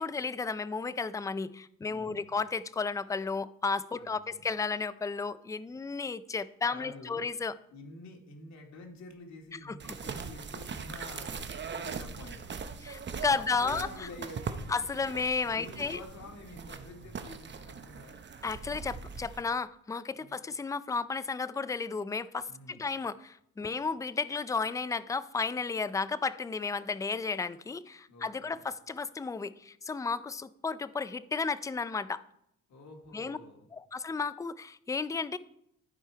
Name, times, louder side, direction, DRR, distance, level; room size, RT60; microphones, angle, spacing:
voice 1, 0.0-7.6 9.6-9.8 12.8-13.9 14.7-16.0 18.4-32.2 33.1-33.4 33.7-35.4, left 4 dB, 10° left, 0.4 m, -33 dB
voice 2, 1.9-2.4 4.0-4.5 6.7-7.3 7.7-13.1 13.3-14.7 15.4-18.2 20.2-20.4 22.5-22.9 23.7-23.9 28.1-28.6 32.7-33.7, left 2 dB, 65° left, 2.2 m, -49 dB
sound 1, 9.8-19.4, right 5 dB, 35° right, 0.8 m, -41 dB
13.5 x 4.8 x 4.6 m
cardioid pair, 90°, 30 cm